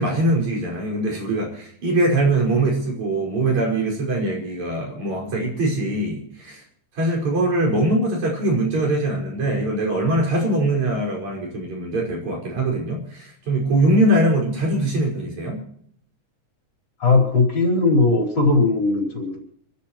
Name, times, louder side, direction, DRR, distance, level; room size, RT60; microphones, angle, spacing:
voice 1, 0.0-6.6 6.9-15.6, right 1 dB, 75° right, -1 dB, 6.9 m, -22 dB
voice 2, 17.0-19.4, left 3 dB, 40° left, 0 dB, 5.4 m, -18 dB
29.0 x 13.5 x 3.1 m, 0.63 s
omnidirectional pair, 3.3 m